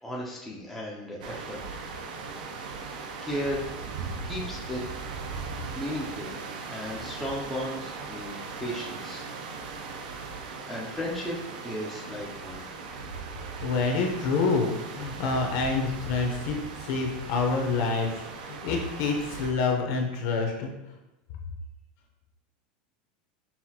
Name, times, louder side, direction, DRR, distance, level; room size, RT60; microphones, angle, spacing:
voice 1, 0.0-1.9 3.2-3.7 4.2-4.8 5.7-6.3 6.7-9.2 10.7-11.4 11.6-12.6, left 1 dB, ahead, -5 dB, 0.4 m, -35 dB
sound 1, 1.2-19.5, right 4 dB, 80° right, 0.5 m, -39 dB
voice 2, 13.6-20.7, left 4 dB, 50° left, 2 dB, 0.7 m, -27 dB
5.6 x 2.5 x 2.8 m, 0.92 s
supercardioid pair, 175°, 5 cm